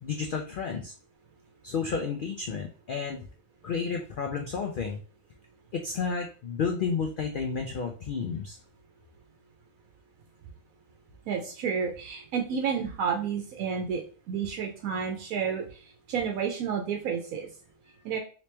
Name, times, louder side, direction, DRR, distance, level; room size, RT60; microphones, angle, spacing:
voice 1, 0.0-0.9 1.6-3.2 3.6-5.0 5.7-8.6, left 5 dB, 85° left, 3 dB, 0.4 m, -31 dB
voice 2, 11.3-14.0 14.3-15.8 16.1-17.5 18.0-18.2, right 6 dB, 85° right, 2 dB, 1.0 m, -30 dB
3.1 x 3.0 x 3.2 m, 0.39 s
omnidirectional pair, 1.4 m